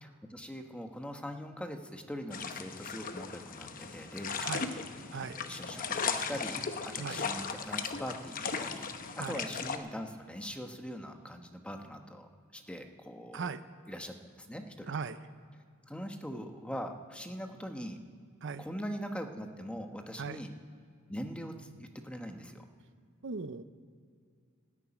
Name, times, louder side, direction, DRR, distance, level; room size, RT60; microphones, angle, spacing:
voice 1, 0.0-4.8 5.2-13.6 13.9-14.9 15.9-18.0 18.6-20.5 21.1-22.7, equal, 5° left, 5 dB, 1.1 m, -42 dB
sound 1, 2.3-9.8, left 5 dB, 40° left, 0.9 m, -37 dB
voice 2, 14.9-15.2 18.4-18.7 20.2-20.4 23.2-23.6, right 5 dB, 60° right, 12 dB, 0.6 m, -38 dB
14.0 x 8.8 x 9.6 m, 2.2 s
head